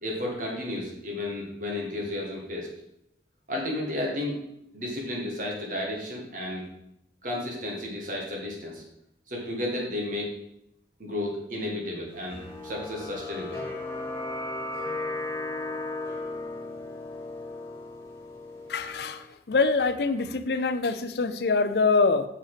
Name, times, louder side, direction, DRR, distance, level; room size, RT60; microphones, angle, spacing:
voice 1, 0.0-2.7 3.5-4.4 4.7-6.7 7.2-8.8 9.3-10.3 11.0-13.6, left 1 dB, 45° right, -1 dB, 2.0 m, -32 dB
sound 1, 12.3-19.2, left 2 dB, 15° left, 2.8 m, -36 dB
voice 2, 18.7-22.3, left 4 dB, 65° left, 11 dB, 0.5 m, -24 dB
7.0 x 5.6 x 5.0 m, 0.81 s
head